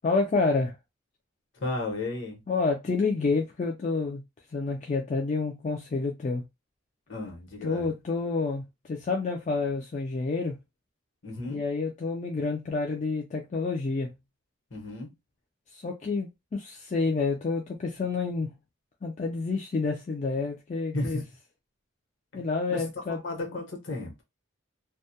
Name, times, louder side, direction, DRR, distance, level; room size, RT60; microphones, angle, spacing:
voice 1, 0.0-0.8 2.5-4.2 4.5-6.4 7.6-10.6 11.5-14.1 15.7-18.5 19.0-21.2 22.3-23.2, left 4 dB, 35° left, 0.3 m, -29 dB
voice 2, 1.5-2.4 7.1-7.9 11.2-11.6 14.7-15.1 20.9-21.2 22.7-22.8 23.1-24.2, left 2 dB, 65° left, 0.9 m, -34 dB
2.2 x 2.1 x 2.7 m
head